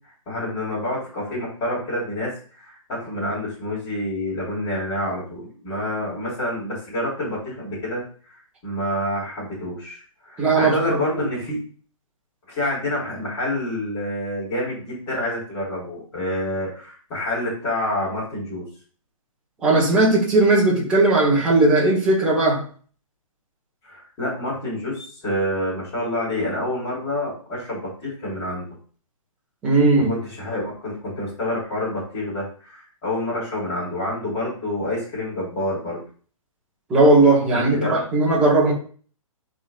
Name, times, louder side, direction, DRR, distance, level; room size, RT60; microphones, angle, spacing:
voice 1, 0.3-8.4 8.6-11.6 12.5-18.6 23.8-28.6 30.1-36.0 37.5-38.0, left 1 dB, 20° left, -9 dB, 3.3 m, -28 dB
voice 2, 10.4-11.0 19.6-22.6 29.6-30.1 36.9-38.7, right 2 dB, 5° right, -5 dB, 1.3 m, -17 dB
11.0 x 3.9 x 2.5 m, 0.42 s
hypercardioid pair, 170°, 18 cm